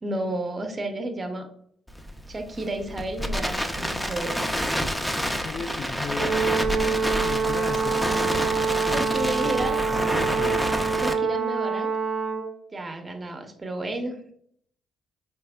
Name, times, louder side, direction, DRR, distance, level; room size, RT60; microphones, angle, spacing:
voice 1, 0.0-1.5 2.3-4.4 8.9-9.8 11.0-11.9 12.7-14.2, right 1 dB, 30° right, 5 dB, 0.7 m, -31 dB
Crackle, 1.9-11.1, equal, 5° left, 0.5 m, -28 dB
voice 2, 5.4-8.7 9.0-10.7, left 5 dB, 60° left, 11 dB, 0.3 m, -38 dB
Brass instrument, 6.2-12.6, right 5 dB, 70° right, 0.6 m, -26 dB
4.1 x 3.1 x 2.2 m, 0.65 s
hypercardioid pair, 55°, 0 cm